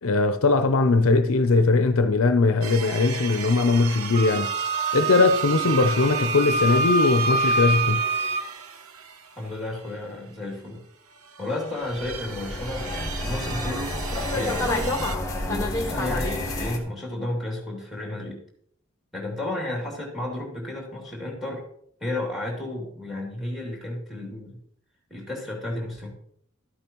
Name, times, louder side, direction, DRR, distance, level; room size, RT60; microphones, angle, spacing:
voice 1, 0.0-4.5 4.9-8.0, left 3 dB, 70° left, 0.6 m, -20 dB
sound 1, 2.6-10.6 11.0-15.2, right 6 dB, 75° right, 0.9 m, -37 dB
Wind instrument woodwind instrument, 4.1-8.5, right 3 dB, 25° right, 0.3 m, -25 dB
voice 2, 9.4-10.8 11.4-14.0 14.3-14.7 15.4-18.4 19.1-21.6 22.0-24.6 25.1-26.1, left 1 dB, ahead, 2.7 m, -32 dB
sound 2, 11.8-16.8, left 2 dB, 15° left, 1.4 m, -29 dB
12.5 x 8.7 x 3.0 m
head